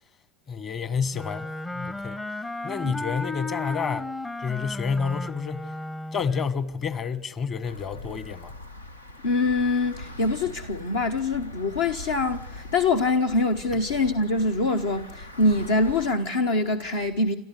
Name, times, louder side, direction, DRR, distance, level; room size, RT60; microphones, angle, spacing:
voice 1, 0.5-1.5 1.7-2.2 2.6-4.1 4.4-5.7 6.1-8.5, left 6 dB, 30° left, 1.3 m, -29 dB
Wind instrument woodwind instrument, 1.1-6.5, left 2 dB, 15° left, 0.7 m, -34 dB
sound 1, 7.6-16.2, left 1 dB, 90° left, 0.9 m, -42 dB
voice 2, 9.2-17.4, left 2 dB, 70° left, 1.1 m, -24 dB
29.0 x 13.0 x 8.2 m
figure-of-eight pair, 80°, 0 cm